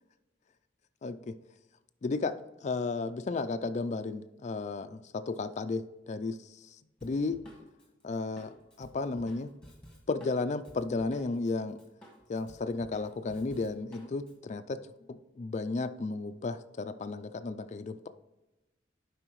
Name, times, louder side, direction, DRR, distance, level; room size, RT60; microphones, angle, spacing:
voice 1, 1.0-1.3 2.0-2.3 2.6-6.4 7.0-7.4 8.0-8.5 8.8-9.5 10.1-11.8 12.3-14.8 15.1-18.1, left 3 dB, 40° left, 9 dB, 0.4 m, -33 dB
Drum kit, 7.0-11.5 11.8-14.3, equal, 5° left, 1.5 m, -53 dB
11.5 x 4.9 x 3.1 m, 1.0 s
head